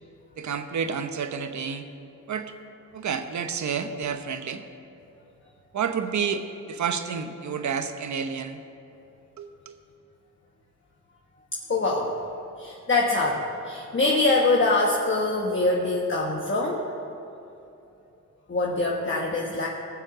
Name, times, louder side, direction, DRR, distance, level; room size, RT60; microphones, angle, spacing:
voice 1, 0.4-1.8 2.3-2.5 2.9-4.6 5.7-8.6 9.4-9.8, right 6 dB, 60° right, 7 dB, 1.1 m, -30 dB
voice 2, 11.7-12.1 12.6-16.8 18.5-19.7, left 2 dB, 35° left, -2 dB, 1.4 m, -24 dB
18.5 x 7.5 x 6.3 m, 2.8 s
cardioid pair, 85°, 33 cm